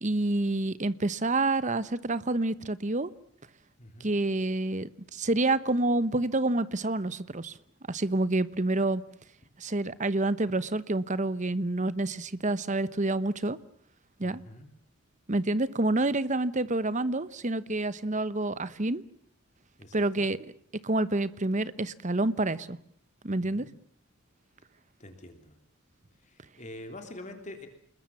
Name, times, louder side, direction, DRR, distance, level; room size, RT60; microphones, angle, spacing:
voice 1, 0.0-3.1 4.0-7.5 7.9-9.0 9.6-13.6 14.2-14.4 15.3-19.0 19.9-20.5 20.8-22.8 23.2-23.7, right 2 dB, 35° right, 1.0 m, -28 dB
voice 2, 3.8-4.1 14.2-14.7 19.8-20.3 23.4-23.7 25.0-25.6 26.2-27.7, left 1 dB, 35° left, 3.3 m, -45 dB
28.5 x 21.0 x 7.3 m
head